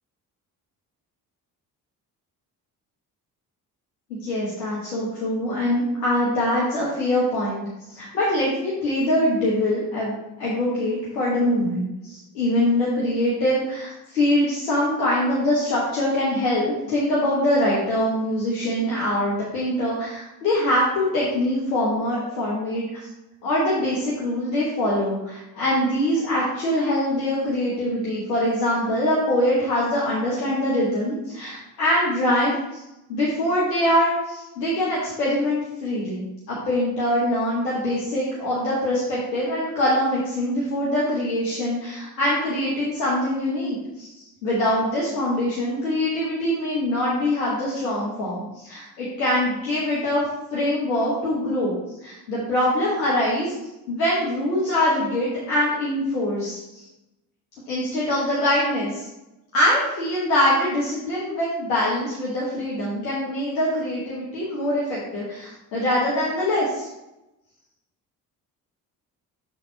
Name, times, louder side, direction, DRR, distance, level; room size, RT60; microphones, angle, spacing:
voice 1, 4.2-22.8 23.4-32.6 33.1-50.2 50.5-51.7 52.0-53.5 53.9-56.8 57.7-59.1 59.5-66.9, left 1 dB, 85° left, -7 dB, 1.2 m, -23 dB
6.4 x 4.0 x 4.4 m, 0.95 s
hypercardioid pair, 45°, 47 cm